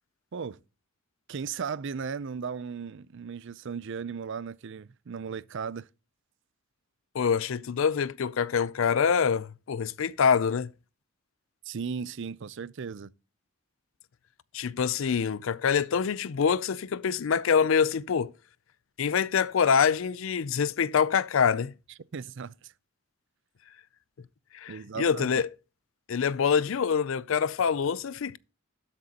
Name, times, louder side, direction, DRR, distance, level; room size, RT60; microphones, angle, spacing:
voice 1, 1.3-5.9 11.7-13.1 22.1-22.7 24.7-25.4, right 6 dB, 60° right, 0.5 m, -36 dB
voice 2, 7.1-10.7 14.5-18.3 19.0-21.7 24.5-25.5 26.1-28.4, left 6 dB, 65° left, 0.4 m, -25 dB
12.0 x 7.6 x 2.9 m
head